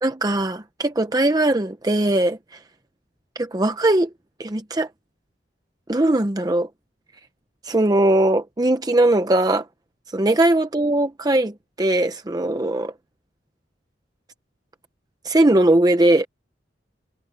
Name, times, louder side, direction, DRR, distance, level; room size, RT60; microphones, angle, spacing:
voice 1, 0.0-2.6 3.4-4.1 4.4-4.9 5.9-6.7 7.6-9.7 10.1-12.9 15.2-16.3, right 1 dB, 20° right, 0.7 m, -20 dB
head